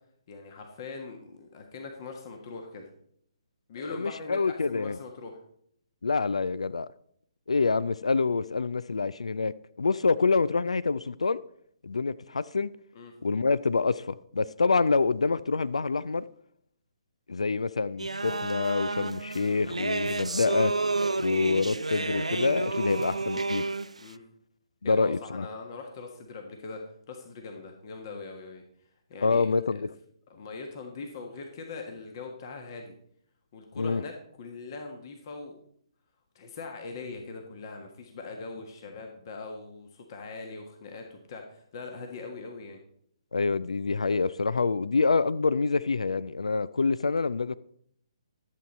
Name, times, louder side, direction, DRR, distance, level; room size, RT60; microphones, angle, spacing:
voice 1, 0.3-2.9 3.7-5.4 12.9-13.1 24.0-24.2 24.8-26.8 27.1-28.6 29.1-29.8 30.3-32.9 33.5-35.5 36.3-42.8, left 3 dB, 40° left, 1.4 m, -41 dB
voice 2, 3.9-5.0 6.0-6.9 7.5-11.4 11.8-12.7 13.2-16.2 17.3-20.7 21.2-23.7 24.8-25.5 29.2-29.9 33.8-34.0 43.3-47.6, left 4 dB, 75° left, 0.3 m, -26 dB
sound 1, 18.0-24.0, right 3 dB, 85° right, 0.4 m, -30 dB
12.0 x 8.0 x 4.2 m
figure-of-eight pair, 135°, 3 cm